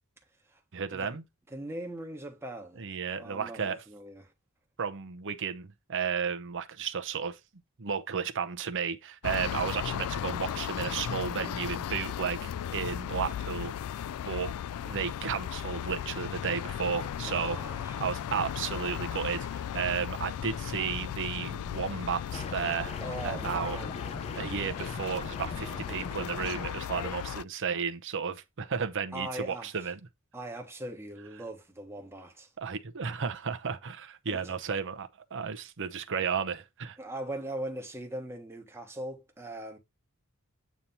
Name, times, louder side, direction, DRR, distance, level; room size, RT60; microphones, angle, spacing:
voice 1, 0.7-1.2 2.8-3.8 4.8-7.4 7.8-13.7 14.2-14.5 14.8-17.6 18.0-23.0 23.2-23.8 24.3-30.0 32.6-37.0, right 6 dB, 60° right, 0.8 m, -33 dB
voice 2, 1.5-2.8 3.2-4.3 17.3-18.0 23.0-24.0 29.1-29.7 30.3-32.5 34.3-34.5 37.0-39.8, right 1 dB, 10° right, 1.3 m, -40 dB
sound 1, 9.2-27.4, left 9 dB, 70° left, 0.3 m, -36 dB
sound 2, 22.3-26.7, left 3 dB, 30° left, 0.6 m, -41 dB
8.4 x 3.0 x 5.5 m
head